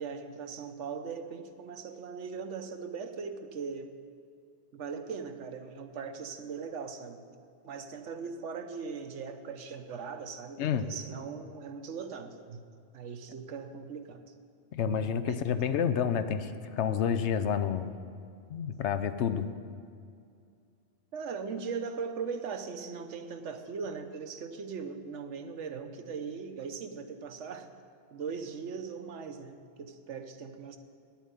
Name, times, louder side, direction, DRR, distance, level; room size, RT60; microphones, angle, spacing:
voice 1, 0.0-3.9 4.7-7.2 7.6-12.6 12.9-14.3 14.8-15.8 21.1-27.7 28.1-30.8, right 5 dB, 90° right, 7 dB, 1.2 m, -39 dB
voice 2, 10.6-10.9 14.7-17.9 18.5-19.5, left 8 dB, 75° left, 11 dB, 0.9 m, -29 dB
10.0 x 7.3 x 9.3 m, 2.3 s
omnidirectional pair, 1.2 m